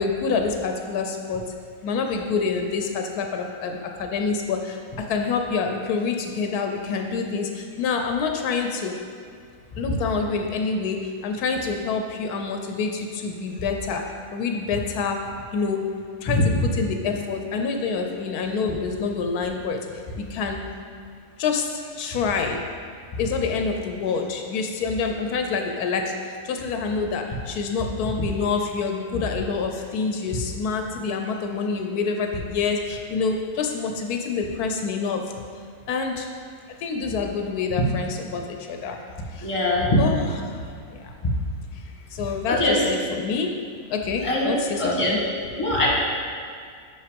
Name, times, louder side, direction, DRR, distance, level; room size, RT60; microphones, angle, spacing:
voice 1, 0.0-1.4 1.8-9.0 9.8-14.0 14.3-15.2 15.5-15.9 16.2-16.4 16.7-20.7 21.4-22.6 23.2-35.2 35.9-36.3 36.8-39.0 39.3-39.5 40.0-40.6 40.9-41.1 42.1-43.6 43.9-45.2, left 5 dB, 85° left, 4 dB, 1.1 m, -27 dB
voice 2, 39.4-40.0 42.5-42.8 44.2-44.5 44.8-45.2 45.6-45.9, left 1 dB, 20° left, -4 dB, 1.5 m, -22 dB
6.2 x 5.5 x 5.2 m, 2.1 s
omnidirectional pair, 1.6 m